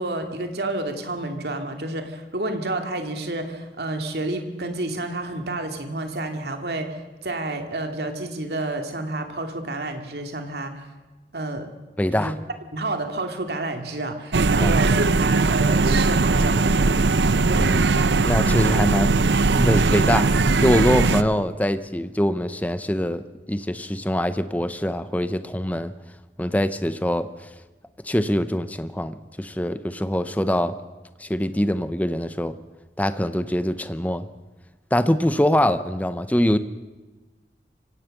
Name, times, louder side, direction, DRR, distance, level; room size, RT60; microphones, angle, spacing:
voice 1, 0.0-10.8 11.3-11.7 12.1-12.3 12.7-17.1, right 2 dB, 70° right, 5 dB, 2.5 m, -30 dB
voice 2, 12.0-12.3 14.6-14.8 17.5-17.9 18.2-19.1 19.5-20.3 20.6-25.9 26.4-27.3 28.0-30.8 31.2-32.5 33.0-34.3 34.9-36.6, left 1 dB, 10° left, 12 dB, 0.7 m, -23 dB
sound 1, 14.3-21.2, right 3 dB, 85° right, 0.7 m, -19 dB
25.5 x 17.0 x 6.6 m, 1.2 s
head